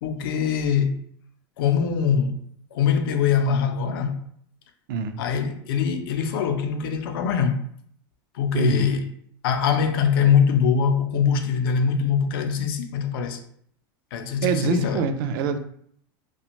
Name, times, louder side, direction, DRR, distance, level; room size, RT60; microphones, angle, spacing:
voice 1, 0.0-1.0 1.6-2.4 2.7-4.2 5.2-7.6 8.4-9.1 9.4-13.4 14.1-15.0, left 7 dB, 80° left, 0.5 m, -23 dB
voice 2, 8.5-8.9 14.4-15.6, right 6 dB, 70° right, 0.4 m, -24 dB
2.5 x 2.2 x 2.9 m
supercardioid pair, 125°, 12 cm